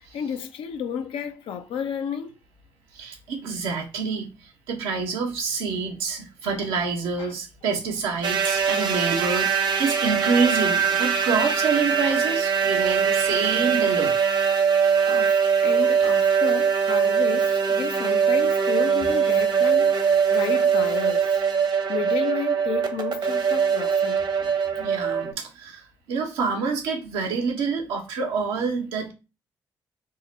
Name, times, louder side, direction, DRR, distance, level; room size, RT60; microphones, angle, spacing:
voice 1, 0.0-2.3 7.2-7.3 15.0-21.4 21.9-24.3, left 8 dB, 75° left, 0.5 m, -32 dB
voice 2, 2.9-14.1 24.8-29.1, right 5 dB, 85° right, 0.8 m, -27 dB
sound 1, 8.2-25.3, right 6 dB, 55° right, 0.9 m, -22 dB
3.7 x 2.1 x 3.8 m
hypercardioid pair, 45°, 9 cm